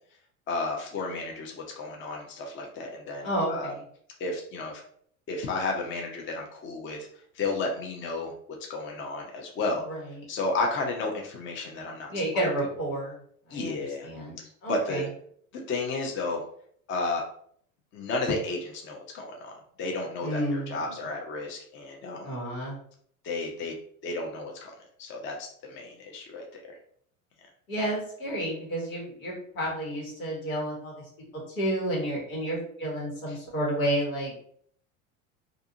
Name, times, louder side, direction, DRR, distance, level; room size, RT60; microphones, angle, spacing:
voice 1, 0.5-3.7 4.2-4.8 5.3-7.0 7.3-8.3 8.7-9.8 10.3-12.1 12.3-12.5 13.5-14.1 14.7-15.1 15.7-16.4 16.9-17.2 17.9-22.3 23.2-23.7 24.0-26.8 33.3-33.4, left 3 dB, 30° left, 1 dB, 0.6 m, -32 dB
voice 2, 3.2-3.7 9.9-10.0 12.1-13.2 13.5-15.0 20.2-20.9 22.2-22.8 27.7-30.9 31.5-34.3, right 1 dB, 85° left, -4 dB, 1.5 m, -31 dB
2.5 x 2.4 x 2.7 m, 0.62 s
hypercardioid pair, 90°, 41 cm